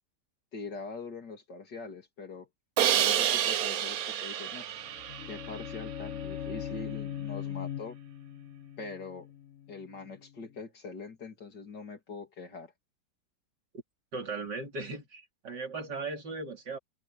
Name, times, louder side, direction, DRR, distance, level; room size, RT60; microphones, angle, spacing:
voice 1, 0.5-2.5 2.9-4.7 5.2-8.0 8.8-9.3 9.7-12.7, left 4 dB, 80° left, 3.6 m, -43 dB
Crash cymbal, 2.8-5.8, right 11 dB, 65° right, 1.2 m, -29 dB
sound 1, 4.7-10.5, left 10 dB, 50° left, 1.1 m, -40 dB
voice 2, 14.1-16.8, right 3 dB, 85° right, 3.8 m, -37 dB
omnidirectional pair, 1.8 m